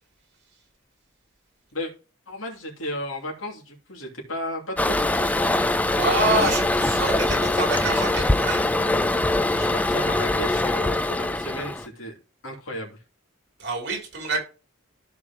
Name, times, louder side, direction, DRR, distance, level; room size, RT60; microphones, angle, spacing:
voice 1, 2.3-5.3 9.5-12.1 12.4-13.0, left 1 dB, 85° left, 2.8 m, -34 dB
Toilet flush, 4.8-11.9, left 2 dB, 5° left, 0.3 m, -23 dB
voice 2, 5.9-8.7 13.6-14.4, right 2 dB, 55° right, 3.4 m, -26 dB
14.0 x 4.8 x 3.0 m
head